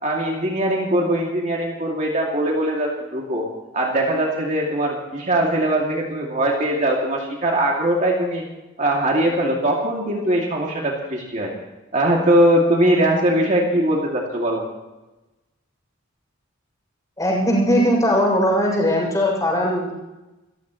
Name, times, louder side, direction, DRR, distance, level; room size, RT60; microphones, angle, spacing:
voice 1, 0.0-3.5 3.7-8.4 8.8-11.5 11.9-14.6, right 1 dB, 40° right, -2 dB, 2.6 m, -21 dB
voice 2, 17.2-19.9, equal, 15° left, -2 dB, 7.0 m, -19 dB
28.0 x 15.0 x 3.2 m, 1.0 s
head